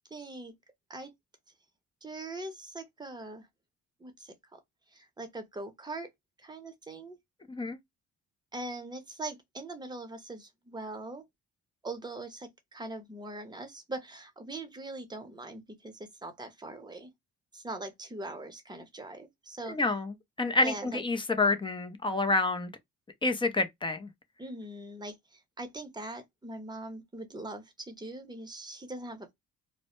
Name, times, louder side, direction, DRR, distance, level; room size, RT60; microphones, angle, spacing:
voice 1, 0.1-0.5 0.9-1.1 2.0-3.5 4.0-4.6 4.9-6.1 6.4-7.2 8.5-11.2 11.8-17.1 17.5-19.8 20.6-21.0 24.4-29.3, right 2 dB, 15° right, 0.7 m, -41 dB
voice 2, 19.7-22.7 23.2-24.1, left 3 dB, 15° left, 0.5 m, -28 dB
2.1 x 2.0 x 2.9 m
cardioid pair, 90°, 30 cm